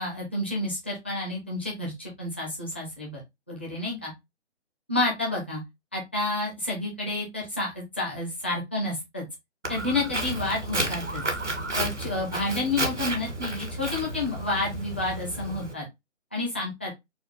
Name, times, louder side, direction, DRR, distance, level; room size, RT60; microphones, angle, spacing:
voice 1, 0.0-3.2 3.5-4.1 4.9-5.6 5.9-9.2 9.7-11.2 11.7-15.8 16.3-16.9, left 2 dB, 10° left, -3 dB, 0.5 m, -30 dB
Walk footsteps, 9.6-15.7, right 1 dB, 90° right, 1.8 m, -32 dB
4.2 x 2.3 x 3.9 m, 0.19 s
figure-of-eight pair, 140°, 35 cm